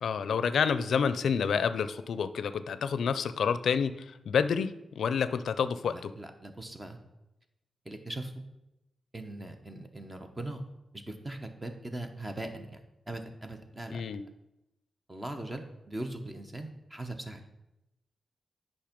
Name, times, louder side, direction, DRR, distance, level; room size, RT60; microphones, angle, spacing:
voice 1, 0.0-6.1 13.9-14.2, left 6 dB, 85° left, 13 dB, 0.4 m, -29 dB
voice 2, 5.9-7.0 7.9-8.3 9.1-10.6 10.9-14.0 15.1-17.4, right 1 dB, 20° right, 5 dB, 0.9 m, -40 dB
8.7 x 5.4 x 5.2 m, 0.92 s
wide cardioid pair, 115°, 0 cm